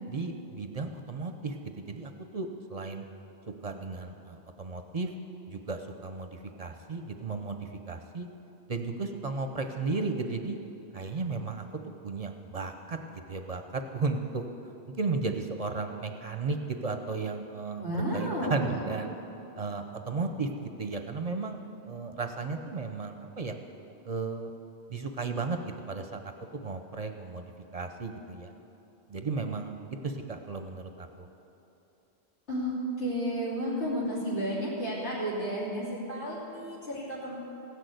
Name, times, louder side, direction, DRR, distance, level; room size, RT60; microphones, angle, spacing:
voice 1, 0.1-1.6 1.9-3.0 3.6-5.1 5.5-8.3 8.7-10.6 10.9-11.7 12.0-14.4 14.9-17.8 18.1-19.1 19.6-21.6 21.9-23.6 24.0-24.5 24.9-26.2 26.6-27.5 27.7-28.5 29.1-31.3, right 4 dB, 40° right, 6 dB, 0.6 m, -34 dB
voice 2, 17.8-18.7 32.5-37.4, equal, 90° left, -7 dB, 3.4 m, -32 dB
16.5 x 6.5 x 7.9 m, 2.9 s
omnidirectional pair, 1.1 m